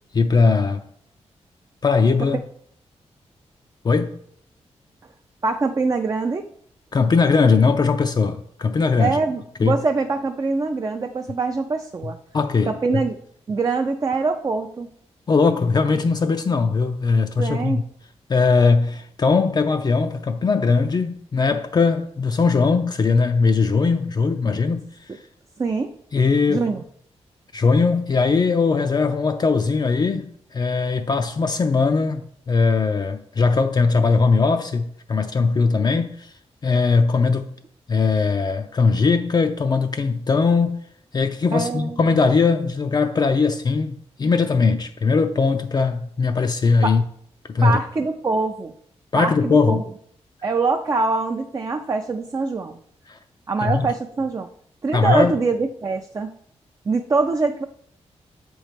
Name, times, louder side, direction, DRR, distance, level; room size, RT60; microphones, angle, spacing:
voice 1, 0.1-0.8 1.8-2.4 3.8-4.2 6.9-9.2 9.6-9.8 12.3-13.0 15.3-17.8 18.3-24.8 25.1-25.2 26.1-26.7 27.5-36.3 36.6-37.5 37.9-40.8 41.1-47.0 47.5-47.8 49.1-49.8 53.1-53.2 53.6-53.9 54.9-55.3, left 4 dB, 40° left, 0.4 m, -20 dB
voice 2, 5.4-6.5 9.0-12.2 12.6-13.2 13.5-14.9 17.4-17.8 25.6-25.9 26.5-26.8 41.5-42.0 46.8-46.9 47.6-48.7 49.2-49.8 50.4-52.8 53.5-54.5 54.8-56.3 56.9-57.6, right 4 dB, 30° right, 0.4 m, -23 dB
7.3 x 3.1 x 5.1 m
wide cardioid pair, 100°, 11 cm